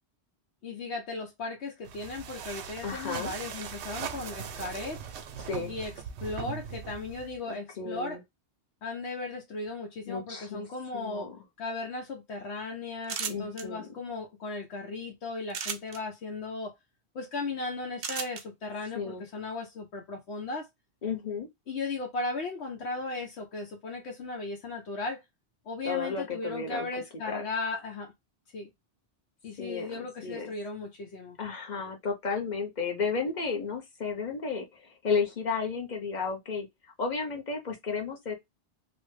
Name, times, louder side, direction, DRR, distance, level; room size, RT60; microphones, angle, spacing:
voice 1, 0.6-5.0 5.7-5.9 6.2-8.2 8.8-11.3 11.6-16.7 17.1-20.7 21.7-25.2 25.7-28.1 28.5-28.7 29.4-31.4, left 3 dB, 80° left, 1.0 m, -36 dB
sound 1, 1.8-7.4, right 7 dB, 85° right, 0.9 m, -40 dB
voice 2, 2.8-3.3 5.4-5.7 7.5-8.2 10.1-10.6 10.9-11.4 13.3-13.9 18.9-19.2 21.0-21.5 25.8-26.9 27.3-27.4 29.6-30.5 31.4-36.7 37.0-38.3, left 5 dB, 45° left, 0.9 m, -33 dB
sound 2, 13.0-13.6 15.5-16.0 18.0-18.4, right 6 dB, 55° right, 0.5 m, -34 dB
2.9 x 2.1 x 3.1 m
omnidirectional pair, 1.1 m